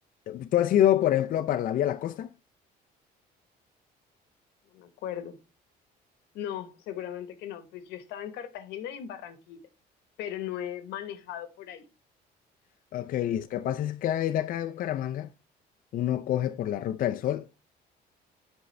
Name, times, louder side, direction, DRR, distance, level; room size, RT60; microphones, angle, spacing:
voice 1, 0.3-2.3 12.9-15.3 15.9-17.6, left 11 dB, 55° left, 0.5 m, -27 dB
voice 2, 4.7-5.4 6.3-9.6 10.2-11.9, left 10 dB, 90° left, 1.1 m, -38 dB
7.8 x 5.3 x 3.2 m
cardioid pair, 110°, 17 cm